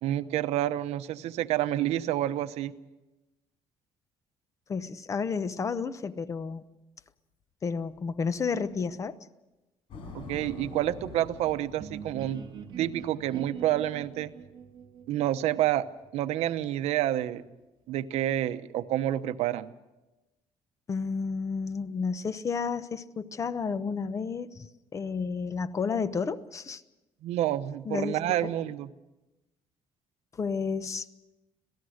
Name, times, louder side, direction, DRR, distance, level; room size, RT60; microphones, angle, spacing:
voice 1, 0.0-2.7 10.1-12.4 12.8-14.3 15.1-15.9 16.1-17.4 17.9-19.7 27.2-28.9, right 13 dB, 80° right, 12 dB, 0.9 m, -28 dB
voice 2, 4.7-6.6 7.6-9.2 20.9-26.8 27.8-28.2 30.3-31.1, left 5 dB, 30° left, 14 dB, 0.8 m, -31 dB
sound 1, 9.9-13.6, left 3 dB, 50° left, 5.9 m, -45 dB
sound 2, 11.8-17.4, right 7 dB, 45° right, 1.6 m, -45 dB
27.0 x 17.0 x 6.5 m, 1.0 s
cardioid pair, 155°, 11 cm